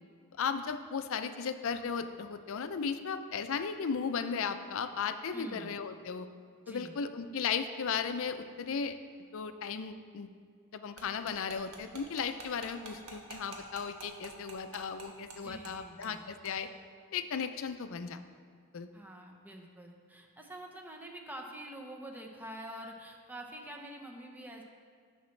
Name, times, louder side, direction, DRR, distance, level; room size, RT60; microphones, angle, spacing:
voice 1, 0.4-6.3 6.7-9.0 9.3-10.3 10.7-16.7 17.1-18.2 18.7-18.9, left 6 dB, 65° left, 10 dB, 0.4 m, -36 dB
voice 2, 5.3-5.7 6.6-7.0 15.3-16.2 18.9-24.6, right 1 dB, 10° right, 1 dB, 0.8 m, -46 dB
sound 1, 11.0-15.4 15.6-15.7 16.0-16.2 16.4-16.5, right 4 dB, 80° right, 1.3 m, -47 dB
9.9 x 7.2 x 3.2 m, 2.1 s
head